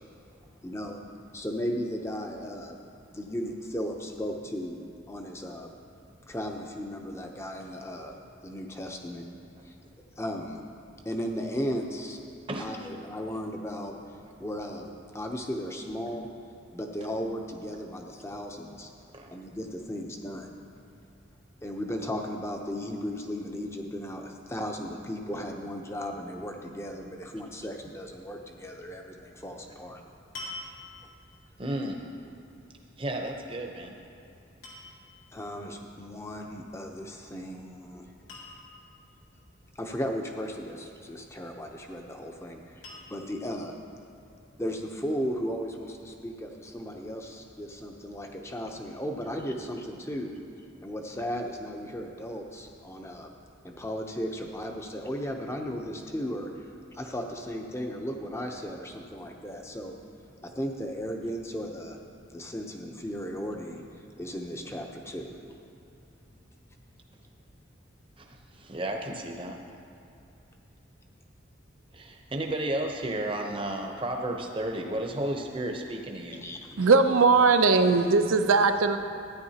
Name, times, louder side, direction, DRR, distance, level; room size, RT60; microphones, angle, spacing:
voice 1, 0.6-1.0 1.3-2.8 3.1-4.8 5.1-5.7 6.3-8.1 8.4-9.2 9.6-9.7 10.2-10.6 11.0-12.2 12.6-13.9 14.4-16.3 16.7-18.9 19.3-20.5 21.6-30.0 35.3-38.0 39.8-43.8 44.6-50.3 50.8-53.3 53.6-56.5 56.9-59.9 60.4-62.0 62.3-63.8 64.2-65.5 76.4-76.8, equal, 15° left, 3 dB, 0.6 m, -35 dB
voice 2, 12.5-12.9 19.1-19.4 31.6-32.0 33.0-34.0 68.2-69.6 71.9-76.4, right 1 dB, 25° right, 2 dB, 0.7 m, -33 dB
sound 1, 29.4-29.6 30.3-31.2 33.6-34.0 34.6-35.2 37.1-37.5 37.8-37.9 38.3-39.0 41.3-41.9 42.8-43.5 44.2-44.3, left 2 dB, 85° left, 2.1 m, -44 dB
voice 3, 76.8-79.0, right 4 dB, 90° right, 8 dB, 0.6 m, -20 dB
14.0 x 9.7 x 2.8 m, 2.8 s
head